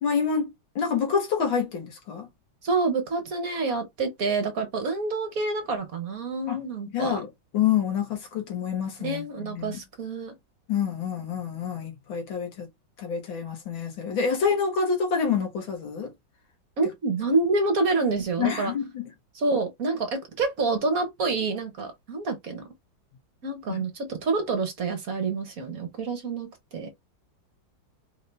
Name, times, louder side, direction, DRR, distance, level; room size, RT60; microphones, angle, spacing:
voice 1, 0.0-2.3 6.5-6.6 6.9-9.8 10.7-12.7 13.0-16.1 18.4-19.0 23.7-23.9, left 6 dB, 85° left, 2.1 m, -27 dB
voice 2, 2.6-7.2 9.0-10.3 16.8-18.7 19.3-22.6 23.4-26.9, right 3 dB, 50° right, 1.4 m, -27 dB
4.5 x 2.7 x 3.3 m
omnidirectional pair, 2.1 m